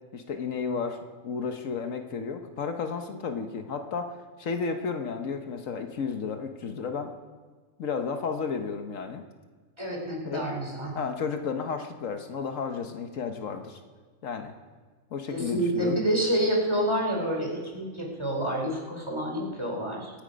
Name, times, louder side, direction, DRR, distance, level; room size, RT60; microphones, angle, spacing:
voice 1, 0.1-7.1 7.8-9.2 10.2-10.5 10.9-13.8 14.2-14.5 15.1-16.0, left 5 dB, 75° left, 6 dB, 1.4 m, -32 dB
voice 2, 9.8-10.9 15.3-20.1, right 1 dB, 20° right, -1 dB, 3.2 m, -28 dB
23.5 x 8.9 x 5.1 m, 1.4 s
omnidirectional pair, 1.4 m